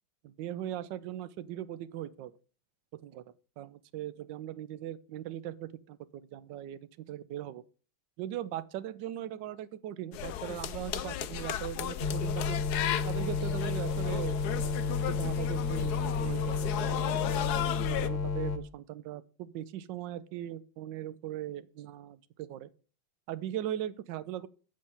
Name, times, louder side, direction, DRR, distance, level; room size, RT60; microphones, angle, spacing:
voice 1, 0.2-2.3 2.9-3.2 3.6-6.8 7.1-7.6 8.2-12.6 13.1-17.1 17.9-22.7 23.3-24.5, right 12 dB, 70° right, 1.3 m, -39 dB
sound 1, 10.1-18.1, left 10 dB, 65° left, 1.0 m, -35 dB
sound 2, 12.0-18.6, left 5 dB, 50° left, 0.5 m, -31 dB
7.6 x 6.4 x 7.0 m
omnidirectional pair, 2.2 m